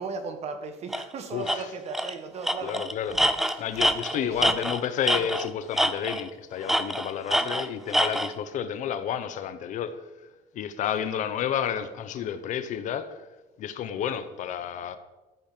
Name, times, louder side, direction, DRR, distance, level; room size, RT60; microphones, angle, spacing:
voice 1, 0.0-2.8 3.5-3.7 4.1-4.5 11.1-11.2 12.2-12.3, right 4 dB, 40° right, 1.6 m, -37 dB
Tools, 0.9-1.1 1.5-1.6 1.9-2.1 2.4-5.5 5.8-6.3 6.7-8.3, equal, ahead, 0.5 m, -25 dB
voice 2, 1.3-1.6 2.6-10.0 10.5-13.2 13.6-15.0, left 9 dB, 50° left, 1.0 m, -31 dB
14.0 x 8.7 x 6.9 m
cardioid pair, 170°, 16 cm